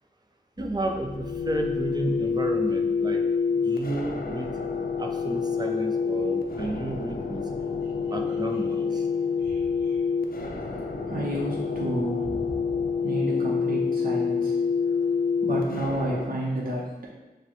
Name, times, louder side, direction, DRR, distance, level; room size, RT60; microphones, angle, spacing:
sound 1, 0.6-16.2, left 5 dB, 65° left, 0.5 m, -27 dB
voice 1, 0.6-3.2 3.5-4.5 5.0-7.4 8.1-9.0, right 1 dB, 25° right, 2 dB, 0.5 m, -32 dB
voice 2, 9.4-10.0 11.0-12.7 13.0-14.5 15.4-16.8, right 1 dB, 60° right, -5 dB, 0.7 m, -31 dB
6.3 x 2.2 x 3.0 m, 1.1 s
wide cardioid pair, 65°, 16 cm